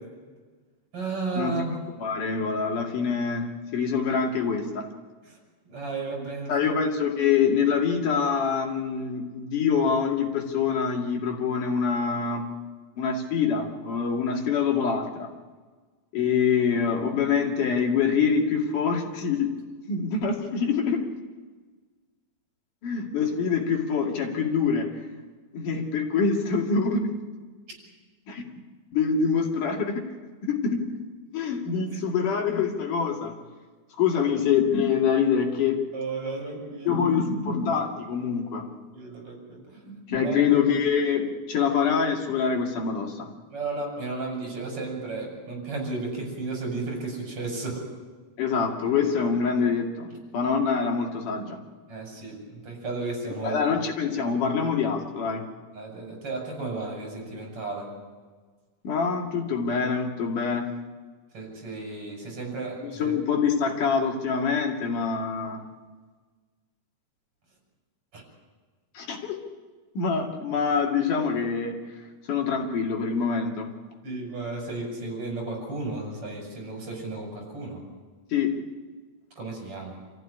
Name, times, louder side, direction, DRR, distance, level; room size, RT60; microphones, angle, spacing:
voice 1, 0.9-1.7 5.7-6.7 34.1-34.2 35.9-37.0 38.9-39.6 40.2-40.6 43.5-47.9 51.9-53.5 55.7-57.9 61.3-63.2 68.1-68.2 74.0-77.8 79.4-80.0, right 3 dB, 45° right, 1 dB, 7.1 m, -33 dB
voice 2, 2.0-4.9 6.5-12.5 13.0-15.3 16.1-19.5 19.9-21.0 22.8-25.0 25.5-27.2 28.3-28.5 28.9-30.0 30.4-30.8 31.3-33.3 34.0-35.8 36.9-38.7 39.9-43.3 48.4-51.6 53.4-55.5 58.8-60.7 62.8-65.6 69.0-69.4 70.0-71.8 72.3-73.7 78.3-78.6, left 6 dB, 85° left, 1 dB, 3.9 m, -25 dB
28.0 x 14.5 x 10.0 m, 1.4 s
omnidirectional pair, 3.6 m